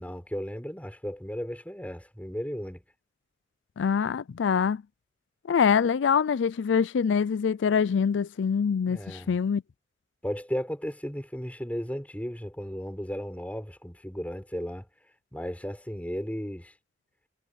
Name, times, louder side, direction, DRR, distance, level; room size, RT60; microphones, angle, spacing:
voice 1, 0.0-2.8 8.9-9.3 10.2-14.9 15.3-16.7, equal, 10° left, 6.5 m, -35 dB
voice 2, 3.8-4.8 5.5-9.6, left 6 dB, 80° left, 0.4 m, -24 dB
head